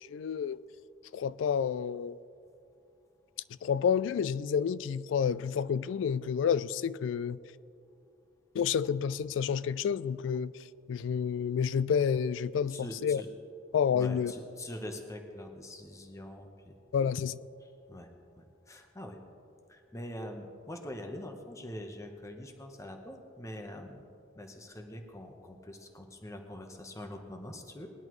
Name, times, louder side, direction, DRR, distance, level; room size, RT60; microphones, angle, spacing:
voice 1, 0.1-0.6 1.1-2.2 3.6-7.4 8.6-10.5 10.9-13.2 13.7-14.3 16.9-17.4, left 7 dB, 80° left, 0.3 m, -29 dB
voice 2, 12.7-13.3 13.9-16.8 17.6-19.2 19.7-24.0 24.3-27.9, left 1 dB, 15° left, 0.9 m, -44 dB
19.5 x 10.5 x 3.1 m
head